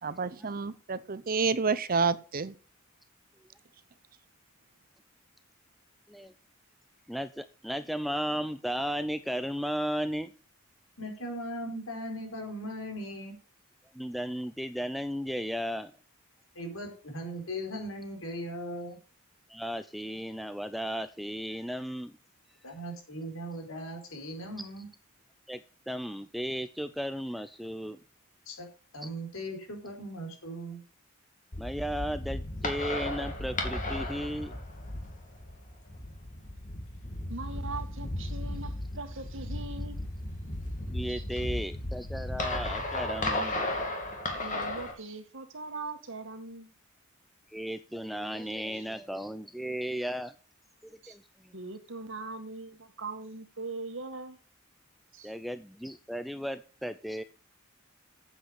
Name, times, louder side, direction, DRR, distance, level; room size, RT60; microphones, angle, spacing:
voice 1, 0.0-2.5, right 4 dB, 45° right, 0.7 m, -29 dB
voice 2, 7.1-10.3 13.9-15.9 19.5-22.1 25.5-28.0 29.0-29.1 31.6-34.5 40.9-43.6 47.5-50.3 50.8-51.5 55.2-57.2, equal, ahead, 0.4 m, -35 dB
voice 3, 11.0-13.4 16.5-19.0 22.6-24.9 28.5-30.8, equal, 75° left, 4.8 m, -39 dB
sound 1, 31.5-44.9, left 1 dB, 40° left, 2.7 m, -35 dB
voice 4, 37.3-40.0 41.1-41.4 44.4-46.7 48.4-48.8 51.0-51.2 51.5-54.4 55.1-55.3, right 3 dB, 65° right, 2.0 m, -41 dB
8.6 x 7.9 x 7.2 m
head